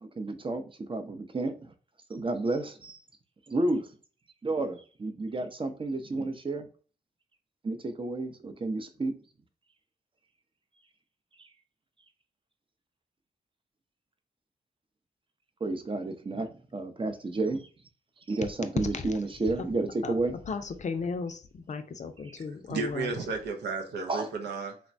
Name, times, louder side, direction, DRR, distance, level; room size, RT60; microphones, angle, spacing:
voice 1, 0.0-1.5 2.1-3.0 3.5-3.9 4.4-6.7 7.6-9.1 15.6-17.6 18.3-20.4 22.3-22.4 24.1-24.3, right 2 dB, 30° right, 0.6 m, -31 dB
voice 2, 18.8-19.1 20.0-20.1 20.5-23.1, left 4 dB, 45° left, 0.4 m, -34 dB
voice 3, 22.7-24.8, right 4 dB, 85° right, 0.5 m, -33 dB
3.1 x 2.1 x 2.5 m
supercardioid pair, 45°, 17 cm